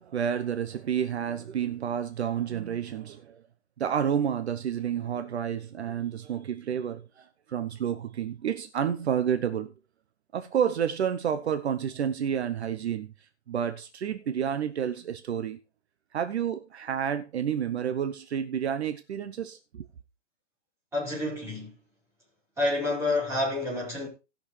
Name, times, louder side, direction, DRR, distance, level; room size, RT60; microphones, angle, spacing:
voice 1, 0.0-3.4 3.8-9.7 10.3-13.1 13.5-15.6 16.1-19.9, right 8 dB, 60° right, 1.0 m, -30 dB
voice 2, 20.9-21.7 22.6-24.1, left 2 dB, 5° right, 5.1 m, -28 dB
19.0 x 6.5 x 3.3 m
hypercardioid pair, 165°, 36 cm